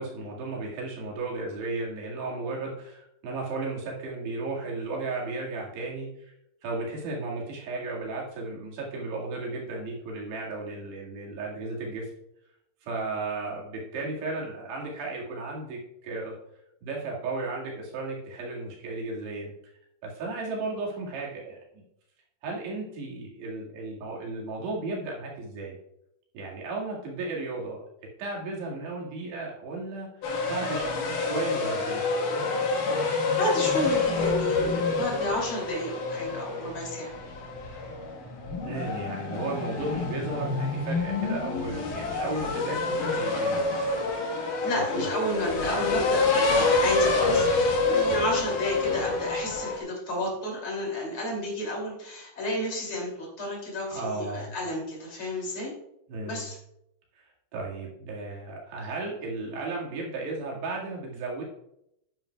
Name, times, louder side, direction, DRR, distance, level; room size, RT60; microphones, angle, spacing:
voice 1, 0.0-6.3 6.6-12.1 12.8-16.4 16.8-19.5 20.0-21.8 22.4-25.8 26.3-27.8 28.2-30.1 30.5-32.0 38.6-43.8 45.0-45.1 53.9-54.5 56.1-56.5 57.2-61.4, right 3 dB, 65° right, -3 dB, 4.0 m, -34 dB
sound 1, 30.2-49.8, left 3 dB, 60° left, 2.3 m, -27 dB
voice 2, 33.4-37.1 44.6-55.7 56.2-56.6, left 1 dB, 35° left, -2 dB, 2.8 m, -31 dB
11.0 x 8.9 x 2.3 m, 0.78 s
omnidirectional pair, 5.5 m